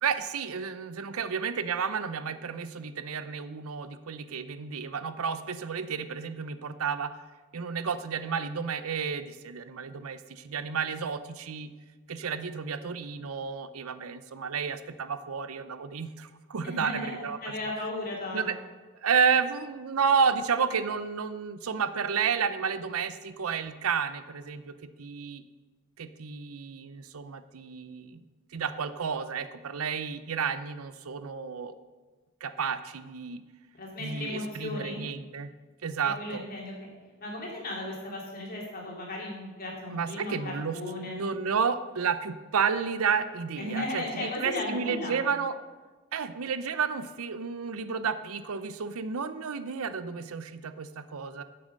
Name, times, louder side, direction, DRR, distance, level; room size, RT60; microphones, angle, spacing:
voice 1, 0.0-7.2 7.5-11.7 12.1-17.4 18.3-18.6 19.0-25.4 26.0-28.2 28.5-31.8 32.4-33.4 34.0-35.5 35.8-36.4 39.9-40.8 41.1-45.6 46.1-51.4, right 6 dB, 80° right, 12 dB, 0.6 m, -31 dB
voice 2, 16.6-18.5 33.8-35.0 36.0-36.7 37.2-41.2 43.6-45.2, left 1 dB, 40° left, -3 dB, 3.0 m, -35 dB
9.6 x 7.8 x 6.5 m, 1.3 s
head